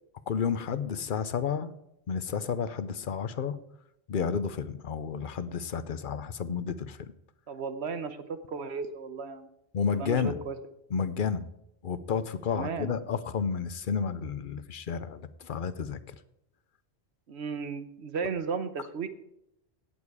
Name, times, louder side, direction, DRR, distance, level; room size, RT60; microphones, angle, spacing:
voice 1, 0.3-1.7 2.1-3.6 4.1-7.0 9.7-10.4 10.9-11.5 11.8-16.0, left 6 dB, 55° left, 13 dB, 0.8 m, -31 dB
voice 2, 7.5-8.2 8.5-9.5 9.9-10.5 12.5-13.0 17.3-19.1, right 5 dB, 80° right, 10 dB, 1.2 m, -35 dB
17.0 x 7.2 x 4.8 m, 0.81 s
omnidirectional pair, 1.1 m